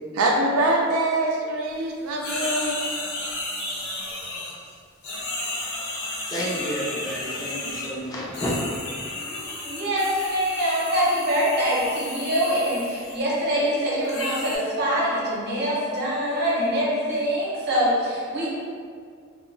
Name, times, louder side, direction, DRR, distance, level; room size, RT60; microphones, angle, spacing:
voice 1, 0.1-2.8, right 1 dB, 80° right, -1 dB, 0.4 m, -23 dB
sound 1, 2.2-4.7 5.0-7.9 8.3-13.2 14.0-14.6, left 2 dB, 80° left, 0.7 m, -33 dB
voice 2, 6.3-8.5 9.2-9.5, equal, 20° left, -5 dB, 0.4 m, -31 dB
voice 3, 9.6-18.5, equal, 55° right, -6 dB, 0.8 m, -24 dB
2.2 x 2.0 x 3.6 m, 2.1 s
head